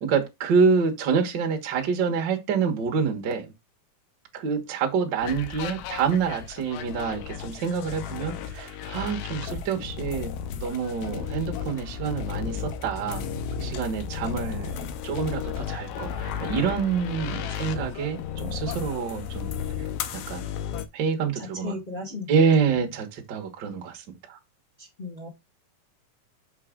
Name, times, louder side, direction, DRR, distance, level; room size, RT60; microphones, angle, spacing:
voice 1, 0.0-3.5 4.3-19.5 19.8-19.9 20.3-20.5 20.9-22.0 22.3-24.4, right 6 dB, 70° right, 1.0 m, -27 dB
sound 1, 5.2-20.9, left 7 dB, 85° left, 2.6 m, -34 dB
voice 2, 21.6-22.3 22.6-22.7 24.8-25.3, left 3 dB, 55° left, 0.5 m, -35 dB
6.0 x 5.7 x 3.7 m
omnidirectional pair, 4.3 m